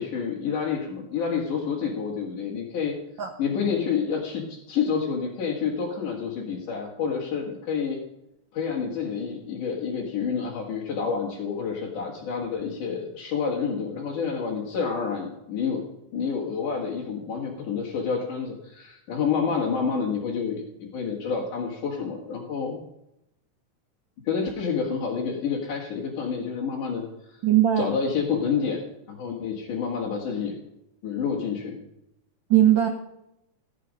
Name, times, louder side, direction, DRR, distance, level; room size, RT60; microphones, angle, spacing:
voice 1, 0.0-2.9 3.4-8.0 8.5-15.8 16.1-22.8 24.2-27.4 27.8-28.8 29.1-30.5 31.0-31.8, left 6 dB, 80° left, -4 dB, 3.4 m, -28 dB
voice 2, 27.4-27.9 32.5-32.9, right 12 dB, 80° right, 5 dB, 1.0 m, -19 dB
15.5 x 8.7 x 5.3 m, 0.85 s
omnidirectional pair, 3.5 m